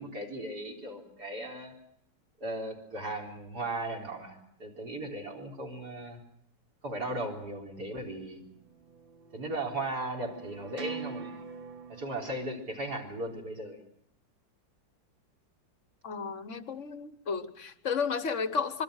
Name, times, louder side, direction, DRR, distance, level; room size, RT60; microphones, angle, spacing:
voice 1, 0.0-1.7 2.4-6.2 6.8-8.4 9.3-11.5 11.9-13.8, right 1 dB, 55° right, 1 dB, 4.5 m, -37 dB
sound 1, 8.5-12.1, right 5 dB, 30° right, 1.4 m, -44 dB
voice 2, 16.0-18.8, left 5 dB, 45° left, 12 dB, 1.3 m, -33 dB
25.5 x 22.5 x 6.4 m, 0.75 s
omnidirectional pair, 2.1 m